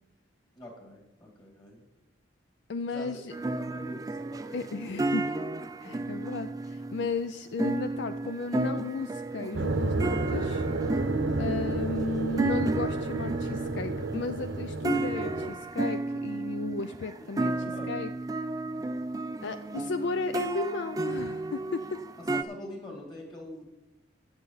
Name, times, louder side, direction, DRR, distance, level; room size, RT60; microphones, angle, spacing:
voice 1, 0.5-1.8 2.9-3.2 3.5-4.7 5.8-6.0 11.2-11.6 17.4-18.0 22.2-23.7, left 1 dB, 20° left, 0 dB, 2.5 m, -44 dB
voice 2, 2.7-3.3 4.5-5.4 5.8-10.7 11.4-17.5 17.9-18.1 19.4-22.0, left 4 dB, 60° left, 10 dB, 0.4 m, -34 dB
sound 1, 3.3-22.4, right 2 dB, 20° right, 0.4 m, -33 dB
sound 2, 9.5-15.5, right 2 dB, 70° right, 0.8 m, -31 dB
16.0 x 6.7 x 4.0 m, 0.96 s
head